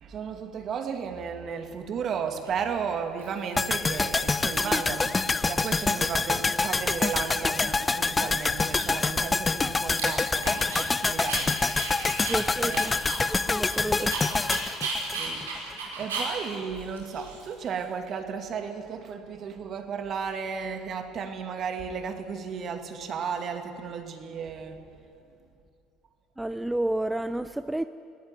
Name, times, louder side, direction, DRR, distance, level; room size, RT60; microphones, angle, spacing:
voice 1, 0.0-11.7 12.6-13.2 14.0-14.1 15.0-15.6 16.0-24.8, right 6 dB, 50° right, 6 dB, 2.5 m, -34 dB
Dog, 2.5-2.6 3.2-3.7 4.0-4.8 5.1-5.2 5.4-6.5 6.7-7.4 7.8-7.9 8.2-10.9 11.2-17.8, right 3 dB, 85° right, 4.6 m, -36 dB
sound 1, 3.6-15.7 16.0-16.1, left 3 dB, 25° left, 0.8 m, -26 dB
voice 2, 12.3-12.9 13.3-14.1 26.4-27.9, right 1 dB, 10° right, 11 dB, 0.7 m, -30 dB
20.5 x 16.5 x 9.8 m, 2.5 s
hypercardioid pair, 65°, 0 cm